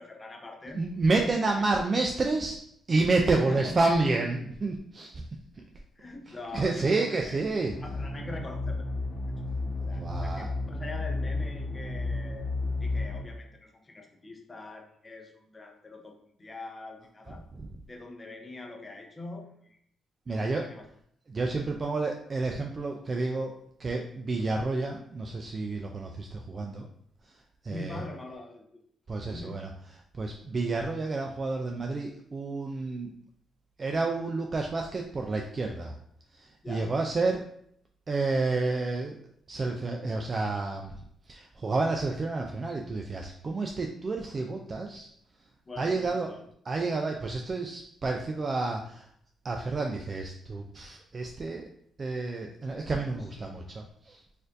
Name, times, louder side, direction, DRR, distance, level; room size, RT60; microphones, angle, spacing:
voice 1, 0.0-0.9 1.3-1.4 1.8-1.9 3.3-3.8 6.0-7.4 7.8-8.9 9.9-12.5 12.8-17.4 17.8-19.8 20.3-20.8 27.6-28.8 29.3-29.7 36.6-36.9 45.7-46.4 53.1-53.6, left 2 dB, 25° left, 3 dB, 0.6 m, -43 dB
voice 2, 0.7-2.6 2.9-5.1 6.5-7.7 9.8-10.5 17.6-17.7 20.3-20.7 21.3-23.5 23.8-26.9 27.6-28.0 29.1-29.7 30.2-33.1 33.8-35.9 36.4-37.4 38.1-39.2 39.5-40.9 41.3-45.1 45.8-46.3 46.7-49.0 49.4-51.6 52.0-54.2, right 3 dB, 35° right, 2 dB, 0.3 m, -29 dB
sound 1, 7.7-13.2, left 2 dB, 40° left, 0.9 m, -32 dB
4.3 x 2.5 x 2.4 m, 0.68 s
cardioid pair, 100°, 0 cm